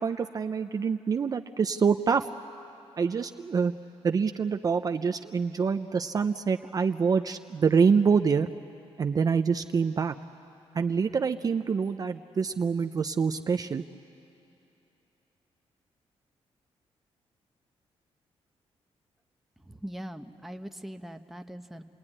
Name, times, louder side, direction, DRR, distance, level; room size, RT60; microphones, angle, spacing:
voice 1, 0.0-2.3 3.0-3.7 4.0-8.5 9.0-10.1 10.7-13.8, right 5 dB, 35° right, 7 dB, 0.5 m, -26 dB
voice 2, 19.6-21.8, equal, ahead, 5 dB, 0.8 m, -41 dB
28.5 x 20.0 x 9.9 m, 2.8 s
wide cardioid pair, 145°, 10 cm